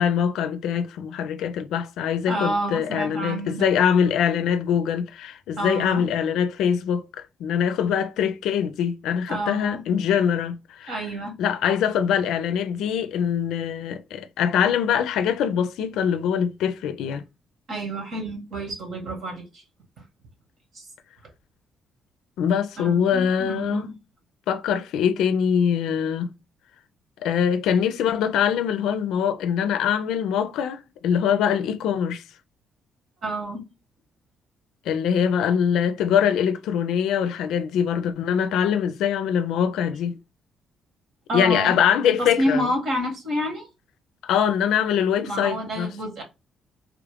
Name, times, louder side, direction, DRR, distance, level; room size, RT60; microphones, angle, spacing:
voice 1, 0.0-10.9 11.4-17.2 22.4-23.9 24.5-26.3 27.2-32.2 34.9-40.2 41.3-42.6 44.2-45.9, left 8 dB, 85° left, 0.4 m, -23 dB
voice 2, 2.3-3.7 5.6-6.0 9.3-9.8 10.9-11.3 17.7-19.6 20.7-20.9 22.8-23.9 33.2-33.6 41.3-41.8 42.2-43.7 45.2-46.2, equal, 65° right, 1.5 m, -29 dB
3.2 x 2.4 x 3.3 m
cardioid pair, 90°, 0 cm